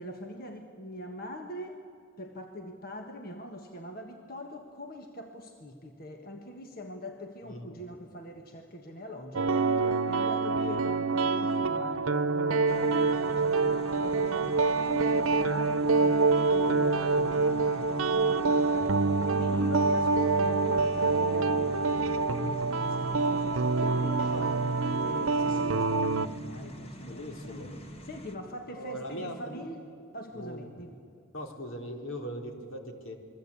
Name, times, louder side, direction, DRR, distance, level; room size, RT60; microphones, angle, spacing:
voice 1, 0.0-1.8 2.2-24.5 25.0-29.8 30.1-31.0, left 1 dB, 45° left, 4 dB, 1.5 m, -43 dB
voice 2, 7.4-7.8 24.2-24.5 27.0-27.8 28.7-29.7 30.3-30.8 31.3-33.1, equal, 75° left, 2 dB, 3.7 m, -40 dB
sound 1, 9.3-26.3, right 4 dB, 85° right, 0.9 m, -26 dB
sound 2, 12.7-28.4, equal, 30° left, 1.6 m, -45 dB
28.5 x 22.0 x 8.6 m, 2.5 s
head